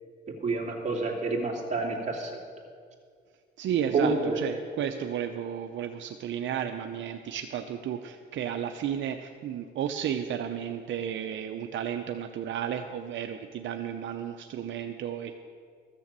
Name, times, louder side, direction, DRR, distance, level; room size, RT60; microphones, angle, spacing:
voice 1, 0.4-2.3 3.9-4.4, right 3 dB, 35° right, -1 dB, 2.8 m, -28 dB
voice 2, 3.6-15.4, right 9 dB, 70° right, 6 dB, 0.6 m, -33 dB
14.0 x 6.9 x 7.5 m, 2.2 s
cardioid pair, 90°, 20 cm